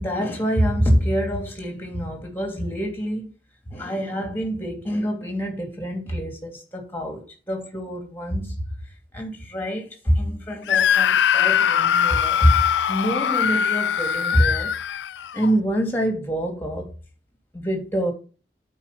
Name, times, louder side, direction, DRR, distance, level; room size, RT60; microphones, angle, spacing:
voice 1, 0.0-3.3 3.7-8.5 9.1-12.6 12.9-14.8 15.3-16.9 17.5-18.1, equal, 10° left, 2.6 m, -25 dB
Screaming, 10.7-15.5, left 9 dB, 85° left, 0.4 m, -21 dB
8.9 x 4.7 x 5.6 m
head